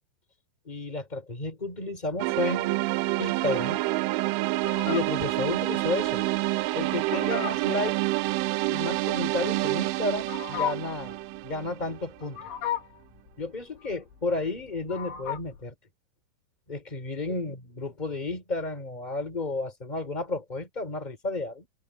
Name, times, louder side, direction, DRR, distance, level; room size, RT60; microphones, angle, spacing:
voice 1, 0.6-2.8 3.2-3.8 4.9-6.2 6.7-8.0 8.7-12.4 13.4-15.7 16.7-21.7, left 2 dB, 10° left, 4.4 m, -32 dB
sound 1, 2.2-12.2, right 20 dB, 85° right, 3.1 m, -28 dB
Fowl, 4.6-15.6, left 10 dB, 70° left, 5.5 m, -37 dB
omnidirectional pair, 5.8 m